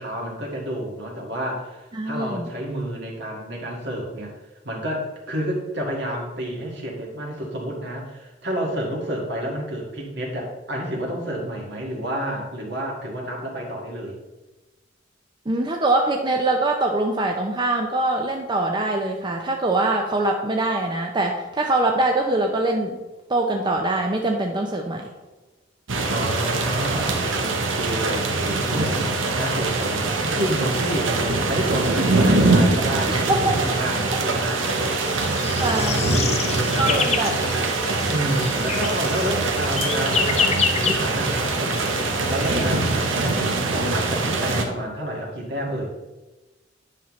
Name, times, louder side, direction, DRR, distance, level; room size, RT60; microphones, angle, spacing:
voice 1, 0.0-4.3 4.6-14.2 26.0-31.1 31.5-34.6 35.7-37.1 38.1-45.9, equal, 60° right, -1 dB, 1.9 m, -29 dB
voice 2, 1.9-2.5 15.5-23.0 23.3-25.1 33.1-33.7 35.6-36.1 36.4-37.3 37.8-38.0, right 2 dB, 25° right, 1 dB, 0.6 m, -23 dB
sound 1, 25.9-44.6, right 3 dB, 85° right, 1.0 m, -23 dB
sound 2, 34.6-43.4, left 6 dB, 35° left, 0.6 m, -29 dB
9.8 x 5.7 x 3.1 m, 1.1 s
head